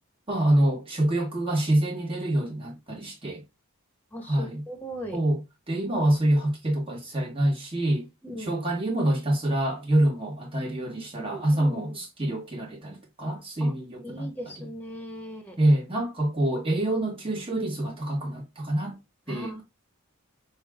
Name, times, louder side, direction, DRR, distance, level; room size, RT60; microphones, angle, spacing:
voice 1, 0.3-3.4 4.3-4.6 5.1-5.4 5.7-8.1 8.4-14.3 15.6-19.0 19.3-19.6, right 1 dB, 25° right, 1.5 m, -26 dB
voice 2, 4.1-5.2 8.2-8.6 11.3-12.0 13.6-13.7 14.0-15.6 19.3-19.6, equal, 10° left, 1.2 m, -38 dB
6.2 x 2.4 x 3.6 m
head